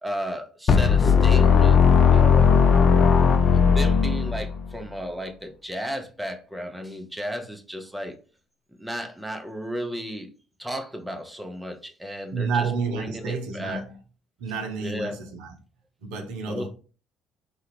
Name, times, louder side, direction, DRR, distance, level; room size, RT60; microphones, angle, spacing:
voice 1, 0.0-1.8 2.1-2.5 3.5-8.2 8.8-10.3 10.6-12.6 12.9-13.8 14.8-15.2 16.5-16.7, equal, 5° right, 0.6 m, -34 dB
sound 1, 0.7-4.7, left 6 dB, 45° left, 0.4 m, -17 dB
voice 2, 12.3-14.0 14.4-15.5 16.0-16.7, right 4 dB, 65° right, 0.5 m, -30 dB
3.3 x 2.3 x 3.1 m
figure-of-eight pair, 50°, 0 cm